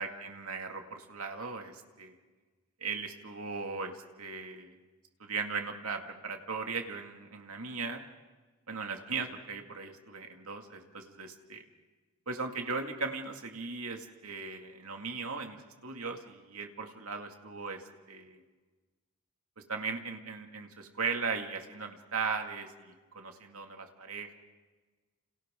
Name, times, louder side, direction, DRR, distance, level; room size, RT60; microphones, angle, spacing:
voice 1, 0.0-2.2 2.8-4.8 5.2-8.0 8.7-11.6 12.3-18.4 19.7-24.4, right 4 dB, 75° right, 4 dB, 2.3 m, -38 dB
30.0 x 28.0 x 3.8 m, 1.3 s
head